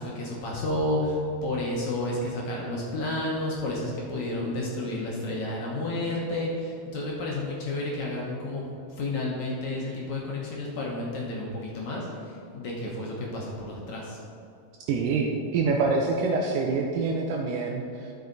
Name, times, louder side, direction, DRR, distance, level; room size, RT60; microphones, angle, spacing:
voice 1, 0.0-8.7 9.0-14.2, left 1 dB, 60° left, -3 dB, 2.1 m, -31 dB
voice 2, 14.9-18.0, right 4 dB, 80° right, 0 dB, 2.0 m, -26 dB
12.0 x 6.4 x 4.0 m, 2.5 s
omnidirectional pair, 4.3 m